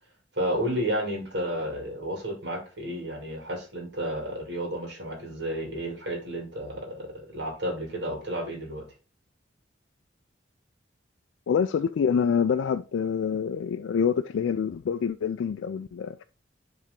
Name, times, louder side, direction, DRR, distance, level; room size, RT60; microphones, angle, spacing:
voice 1, 0.3-8.8, right 1 dB, 65° right, 2.4 m, -32 dB
voice 2, 11.5-16.2, left 7 dB, 90° left, 0.3 m, -26 dB
10.0 x 3.5 x 3.7 m
head